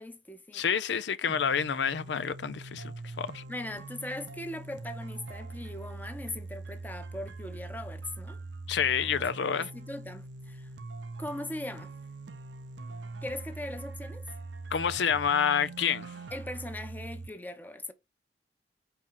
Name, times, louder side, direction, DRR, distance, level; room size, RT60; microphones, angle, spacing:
voice 1, 0.0-0.6 3.5-8.4 9.3-10.7 11.2-11.9 13.2-14.2 16.3-17.9, left 1 dB, 10° left, 0.8 m, -40 dB
voice 2, 0.5-3.4 8.7-9.7 14.7-16.1, left 7 dB, 80° left, 0.5 m, -28 dB
sound 1, 1.3-17.3, right 3 dB, 85° right, 0.6 m, -43 dB
4.7 x 4.4 x 5.6 m
head